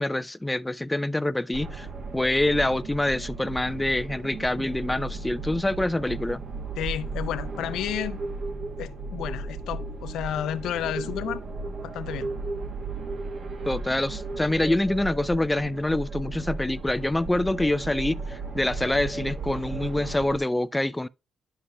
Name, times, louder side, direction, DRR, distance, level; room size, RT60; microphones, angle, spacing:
voice 1, 0.0-1.9 2.1-6.4 13.7-21.1, left 1 dB, 10° left, 0.3 m, -26 dB
sound 1, 1.5-20.4, right 3 dB, 55° right, 1.8 m, -35 dB
voice 2, 6.8-8.2 8.8-11.4 11.8-12.3, left 11 dB, 80° left, 0.5 m, -31 dB
9.8 x 7.1 x 2.2 m
cardioid pair, 90°, 0 cm